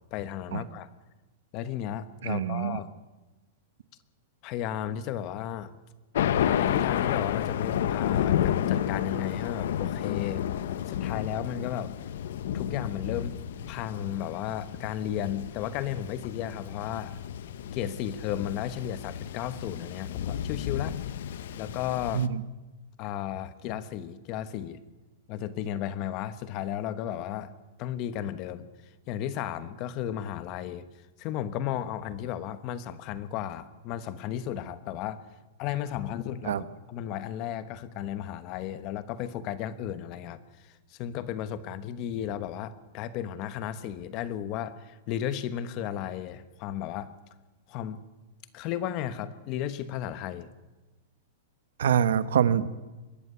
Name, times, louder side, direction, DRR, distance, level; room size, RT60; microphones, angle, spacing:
voice 1, 0.1-0.9 1.5-2.9 4.4-5.7 6.4-10.4 10.9-11.9 12.5-13.4 13.7-17.2 17.7-21.0 21.6-22.3 23.0-24.8 25.3-27.5 27.8-28.7 29.1-30.9 31.2-35.2 35.6-47.1 47.7-48.0 48.5-50.5, left 10 dB, 30° left, 14 dB, 1.1 m, -34 dB
voice 2, 2.2-2.8 22.1-22.4 36.5-36.6 51.8-52.8, right 8 dB, 85° right, 14 dB, 1.2 m, -25 dB
Thunder, 6.2-22.3, left 10 dB, 65° left, 0.9 m, -31 dB
22.5 x 13.5 x 9.7 m, 1.1 s
supercardioid pair, 175°, 0 cm